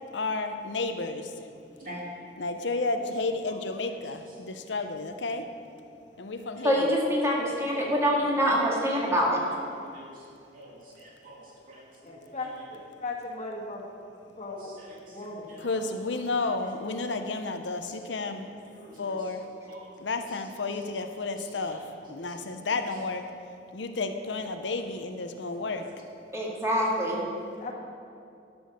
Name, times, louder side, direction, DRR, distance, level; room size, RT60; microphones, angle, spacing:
voice 1, 0.1-1.3 2.4-5.4 6.2-6.9 15.6-18.5 19.0-19.4 20.0-21.8 22.1-23.2 23.7-25.8, left 3 dB, 90° left, 7 dB, 0.7 m, -31 dB
voice 2, 6.6-9.3 26.3-27.2, equal, 15° right, -4 dB, 2.0 m, -25 dB
voice 3, 9.9-10.2 10.5-12.6 14.6-15.8 16.4-16.5 17.8-18.2 18.6-19.9 20.3-20.4 21.4-22.3 22.7-22.8 25.6-25.8, right 1 dB, 50° right, -5 dB, 2.8 m, -49 dB
voice 4, 12.0-12.5 12.7-13.9 14.4-14.7 15.1-15.4 27.6-27.7, left 3 dB, 40° left, -2 dB, 1.6 m, -37 dB
11.5 x 6.3 x 6.5 m, 2.5 s
head